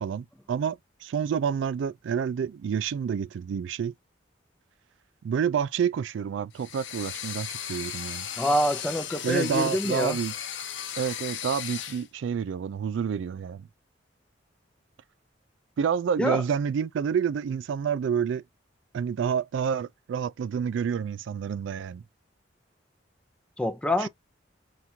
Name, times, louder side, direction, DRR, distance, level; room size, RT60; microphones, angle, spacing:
voice 1, 0.0-3.9 5.2-8.3 9.2-10.3 11.0-13.7 15.8-18.4 18.9-22.0 24.0-24.1, right 7 dB, 80° right, 0.3 m, -28 dB
sound 1, 6.5-12.1, left 9 dB, 75° left, 0.7 m, -36 dB
voice 2, 8.4-10.2 16.2-16.4 23.6-24.1, left 1 dB, 5° left, 0.4 m, -26 dB
5.8 x 2.4 x 2.7 m
head